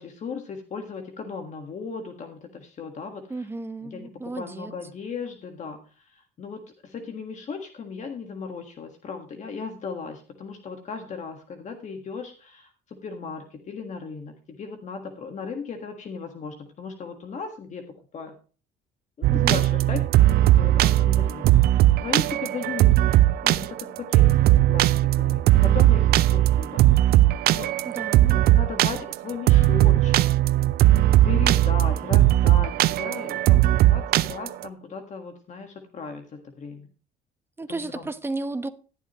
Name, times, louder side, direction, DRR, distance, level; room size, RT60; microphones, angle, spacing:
voice 1, 0.0-3.5 3.8-17.8 18.1-18.4 19.2-21.5 22.0-26.9 27.5-27.7 28.5-30.2 31.2-36.9 37.7-38.1, left 5 dB, 45° left, 1.6 m, -36 dB
voice 2, 3.3-4.7 19.3-19.6 27.8-28.4 37.6-38.7, right 2 dB, 15° right, 0.9 m, -33 dB
sound 1, 19.2-34.6, right 14 dB, 65° right, 0.5 m, -19 dB
11.5 x 11.0 x 3.0 m
cardioid pair, 110°, 17 cm